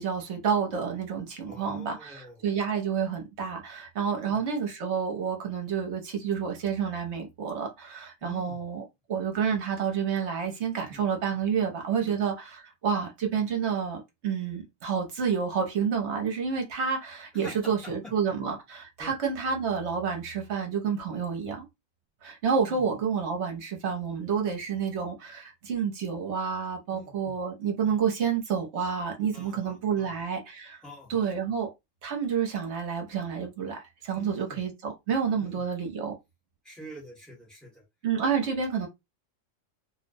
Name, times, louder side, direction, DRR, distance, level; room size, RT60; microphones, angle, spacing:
voice 1, 0.0-8.8 9.1-21.6 22.2-30.8 31.1-31.7 32.0-36.1 38.0-38.9, right 6 dB, 65° right, 1.0 m, -29 dB
voice 2, 1.5-2.5 4.1-4.4 8.2-8.6 10.9-11.0 12.0-12.2 17.3-17.9 19.0-19.1 21.1-21.3 22.7-22.8 26.9-27.3 29.3-30.3 30.8-31.3 34.1-34.6 35.4-35.6 36.6-37.8, equal, ahead, 1.0 m, -47 dB
2.5 x 2.1 x 2.6 m
omnidirectional pair, 1.3 m